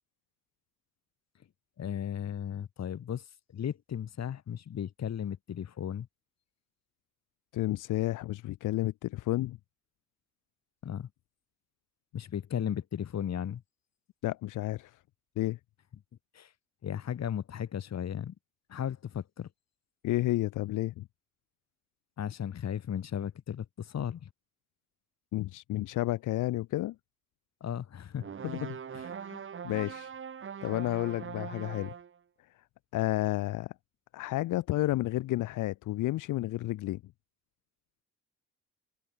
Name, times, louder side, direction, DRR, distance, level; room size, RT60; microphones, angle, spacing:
voice 1, 1.8-3.2 3.5-6.1 10.8-11.1 12.1-13.6 16.3-16.5 16.8-18.3 18.7-19.5 22.2-24.3 27.6-28.3 28.9-29.1, left 9 dB, 60° left, 6.1 m, -35 dB
voice 2, 7.5-9.6 14.2-15.0 15.4-15.6 20.0-21.1 25.3-27.0 28.4-28.8 29.2-30.1 30.6-31.9 32.9-33.7 34.1-37.0, left 16 dB, 90° left, 2.6 m, -31 dB
sound 1, 28.2-32.2, right 7 dB, 45° right, 1.9 m, -41 dB
cardioid pair, 90°, 30 cm